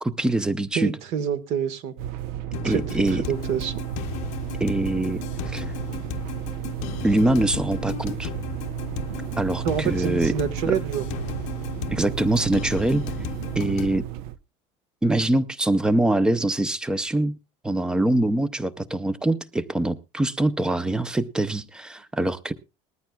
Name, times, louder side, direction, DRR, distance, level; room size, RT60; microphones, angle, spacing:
voice 1, 0.0-0.9 2.6-3.2 4.6-5.7 7.0-8.3 9.4-10.3 10.7-10.8 11.9-13.0 13.6-14.0 15.0-17.4 17.6-22.5, right 1 dB, 5° right, 15 dB, 0.5 m, -23 dB
voice 2, 0.7-1.9 2.6-2.8 3.1-3.7 9.6-11.0, right 8 dB, 55° right, 13 dB, 1.4 m, -27 dB
sound 1, 2.0-14.4, right 12 dB, 80° right, 0.8 m, -33 dB
sound 2, 2.5-14.0, left 14 dB, 65° left, 0.7 m, -36 dB
20.0 x 13.5 x 2.3 m, 0.28 s
cardioid pair, 175°, 13 cm